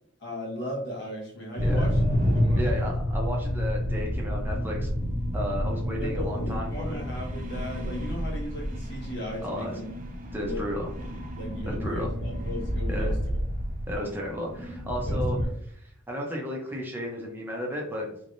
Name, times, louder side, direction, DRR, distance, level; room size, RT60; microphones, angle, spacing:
voice 1, 0.2-2.0 2.3-2.9 6.0-9.9 10.4-10.6 11.3-13.4 15.0-15.5, equal, 60° left, -2 dB, 1.4 m, -37 dB
sound 1, 1.6-15.5, equal, 40° right, 0.8 m, -29 dB
voice 2, 2.6-4.9 5.3-7.0 9.4-9.8 10.3-10.9 11.7-12.1 12.9-13.2 13.9-15.4 15.7-15.8 16.1-18.1, equal, 10° right, -1 dB, 0.7 m, -33 dB
4.2 x 3.3 x 2.6 m, 0.68 s
head